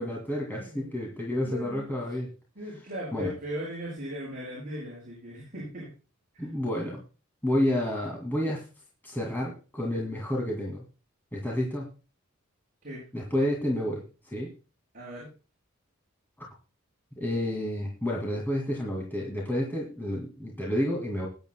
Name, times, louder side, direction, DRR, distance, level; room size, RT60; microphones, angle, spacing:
voice 1, 0.0-2.3 3.1-3.3 6.4-7.0 7.4-8.7 9.0-10.8 11.3-11.9 13.1-14.5 16.4-16.5 17.2-21.3, left 1 dB, 10° left, -3 dB, 2.3 m, -30 dB
voice 2, 1.4-1.8 2.6-5.9 6.3-6.5 12.8-13.0 14.9-15.3, equal, 40° right, -8 dB, 7.6 m, -38 dB
20.5 x 10.5 x 2.2 m, 0.33 s
head